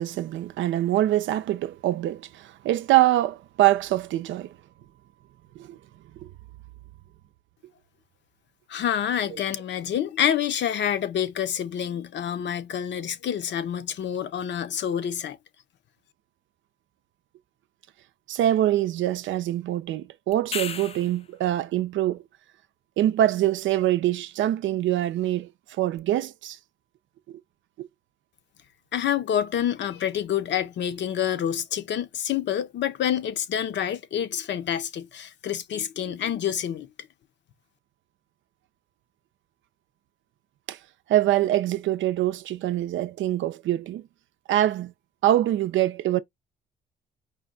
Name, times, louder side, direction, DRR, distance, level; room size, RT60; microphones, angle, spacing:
voice 1, 0.0-4.5 5.6-5.8 18.3-22.2 23.0-25.5 25.8-26.6 27.3-27.4 27.8-27.9 40.7-40.8 41.1-44.0 44.5-44.9 45.2-46.2, right 13 dB, 75° right, 0.5 m, -24 dB
voice 2, 8.7-15.4 28.9-36.9, left 9 dB, 65° left, 0.8 m, -27 dB
sound 1, 20.3-21.3 26.0-26.1, left 6 dB, 30° left, 0.4 m, -33 dB
5.0 x 2.3 x 3.8 m
cardioid pair, 90°, 20 cm